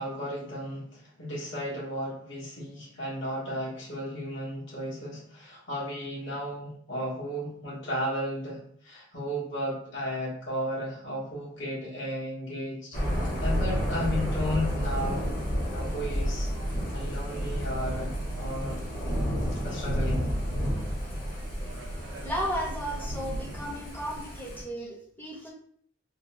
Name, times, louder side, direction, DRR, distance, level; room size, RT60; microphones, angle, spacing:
voice 1, 0.0-15.3 15.7-18.8 19.5-20.3, equal, 70° left, -6 dB, 1.2 m, -34 dB
Thunder / Rain, 12.9-24.6, equal, 45° left, 1.0 m, -31 dB
sound 1, 15.8-23.4, right 1 dB, 70° right, 0.3 m, -39 dB
voice 2, 22.2-25.5, equal, 10° left, -2 dB, 0.6 m, -34 dB
3.7 x 2.2 x 2.5 m, 0.63 s
head